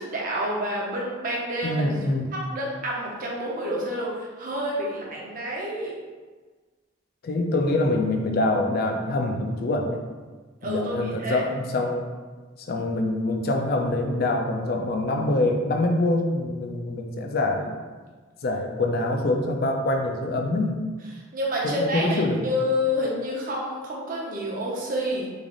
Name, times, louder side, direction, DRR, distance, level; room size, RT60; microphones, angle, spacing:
voice 1, 0.0-1.8 2.3-6.0 10.6-11.4 21.3-25.3, equal, 45° right, -3 dB, 0.8 m, -28 dB
voice 2, 1.6-2.3 7.2-10.0 10.6-12.1 12.7-17.8 18.4-20.8 21.6-22.4, left 2 dB, 50° left, 3 dB, 0.4 m, -25 dB
3.3 x 2.5 x 3.7 m, 1.4 s
head